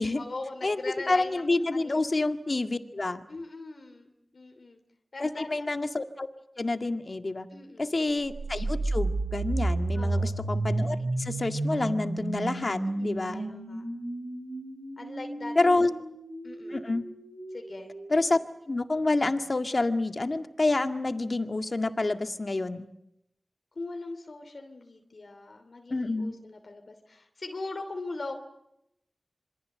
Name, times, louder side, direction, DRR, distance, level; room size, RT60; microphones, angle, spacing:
voice 1, 0.2-2.1 3.3-4.8 5.1-5.7 7.5-8.1 9.9-10.3 12.8-13.8 15.0-15.9 16.4-16.9 17.5-17.9 23.7-28.4, left 3 dB, 70° left, 5 dB, 2.9 m, -41 dB
voice 2, 1.1-3.2 5.2-6.3 6.6-7.5 7.8-13.5 15.6-15.9 16.7-17.0 18.1-18.4 18.7-22.9 25.9-26.3, left 2 dB, 50° left, 7 dB, 2.0 m, -28 dB
sound 1, 8.2-18.1, right 2 dB, 80° right, 4.3 m, -32 dB
27.0 x 23.5 x 7.9 m, 0.82 s
cardioid pair, 50°, 0 cm